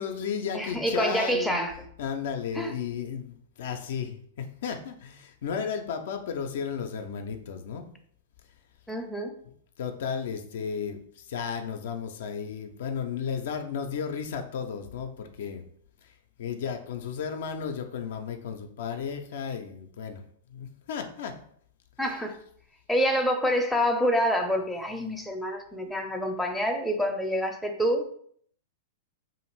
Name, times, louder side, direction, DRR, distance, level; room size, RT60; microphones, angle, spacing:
voice 1, 0.0-1.6 2.0-7.9 9.8-15.6 16.0-20.2 20.5-21.4 25.1-25.2, left 6 dB, 60° left, 6 dB, 0.3 m, -34 dB
voice 2, 0.5-1.8 2.5-2.7 8.9-9.3 22.0-22.4 22.9-28.0, equal, ahead, 2 dB, 0.4 m, -27 dB
2.5 x 2.4 x 3.1 m, 0.62 s
figure-of-eight pair, 100°, 0 cm